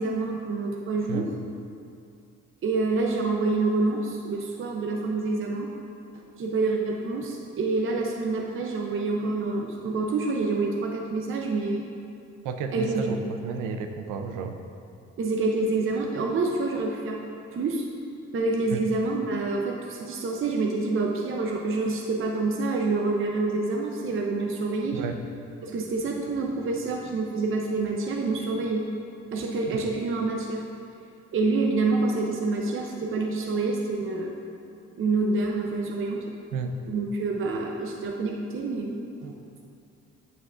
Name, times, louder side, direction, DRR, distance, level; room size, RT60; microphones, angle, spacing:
voice 1, 0.0-1.3 2.6-5.7 6.1-11.9 12.7-13.1 15.2-17.2 17.5-17.9 18.3-25.0 25.6-28.9 29.3-30.6 31.3-34.3 35.0-36.3 36.9-39.3, right 3 dB, 45° right, 0 dB, 0.7 m, -27 dB
voice 2, 12.4-14.6 18.7-18.8 24.9-25.2 29.7-29.8 36.5-36.7, right 5 dB, 90° right, 6 dB, 0.6 m, -32 dB
8.3 x 7.0 x 2.5 m, 2.6 s
cardioid pair, 90°, 30 cm